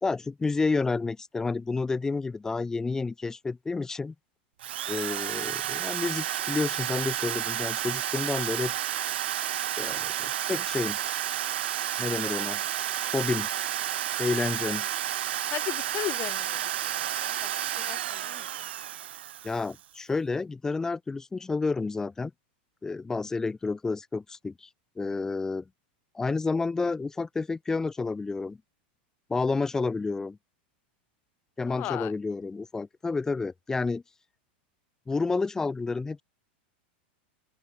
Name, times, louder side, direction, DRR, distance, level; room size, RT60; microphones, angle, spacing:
voice 1, 0.0-4.1 4.9-8.7 9.8-11.0 12.0-12.6 13.1-13.5 14.2-14.9 19.4-22.3 22.8-24.7 25.0-25.6 26.1-28.6 29.3-30.4 31.6-34.0 35.1-36.2, left 4 dB, 10° left, 0.7 m, -30 dB
Drill, 4.6-19.8, right 12 dB, 85° right, 0.9 m, -31 dB
voice 2, 15.5-18.7 31.7-32.1, left 16 dB, 35° left, 2.6 m, -37 dB
open air
supercardioid pair, 140°, 6 cm